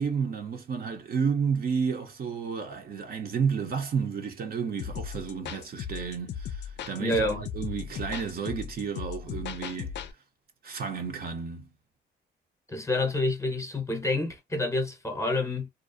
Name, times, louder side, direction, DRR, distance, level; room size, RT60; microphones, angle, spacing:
voice 1, 0.0-9.9 10.6-11.7, right 6 dB, 50° right, 0.6 m, -31 dB
sound 1, 4.8-10.1, left 8 dB, 60° left, 0.4 m, -37 dB
voice 2, 7.0-7.5 12.7-15.7, left 2 dB, 15° left, 0.8 m, -28 dB
2.5 x 2.0 x 2.5 m
cardioid pair, 90°, 20 cm